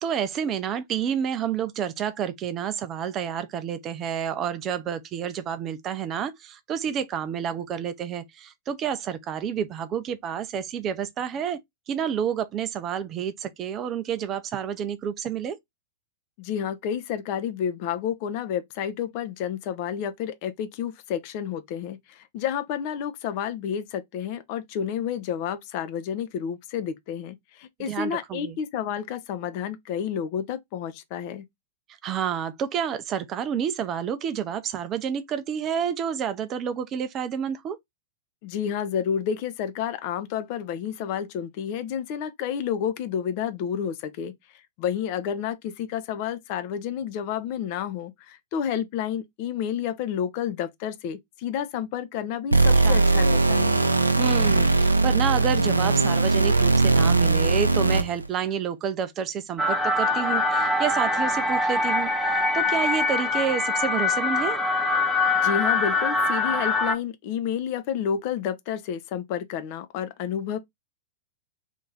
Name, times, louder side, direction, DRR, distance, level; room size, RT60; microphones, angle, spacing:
voice 1, 0.0-11.6 11.9-15.6 27.8-28.6 32.0-37.8 52.8-53.0 54.2-64.6, right 8 dB, 30° right, 0.5 m, -29 dB
voice 2, 16.4-31.4 38.4-44.3 44.8-53.8 65.4-70.6, left 8 dB, 45° left, 0.5 m, -30 dB
sound 1, 52.5-58.3, right 3 dB, 85° right, 0.4 m, -20 dB
sound 2, 59.6-66.9, left 2 dB, ahead, 0.9 m, -23 dB
2.9 x 2.6 x 3.6 m
figure-of-eight pair, 100°, 0 cm